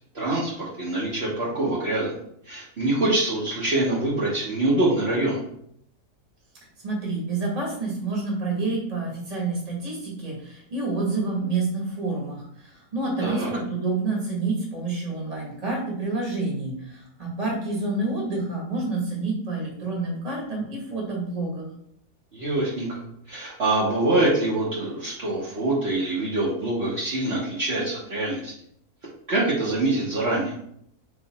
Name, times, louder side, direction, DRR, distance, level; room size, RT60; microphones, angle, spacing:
voice 1, 0.1-2.1 2.4-5.4 13.2-13.5 22.3-22.9 23.3-28.5 29.3-30.5, right 2 dB, 45° right, -8 dB, 1.2 m, -25 dB
voice 2, 6.8-21.7, right 3 dB, 25° right, -3 dB, 1.3 m, -28 dB
3.9 x 3.3 x 4.1 m, 0.71 s
omnidirectional pair, 1.6 m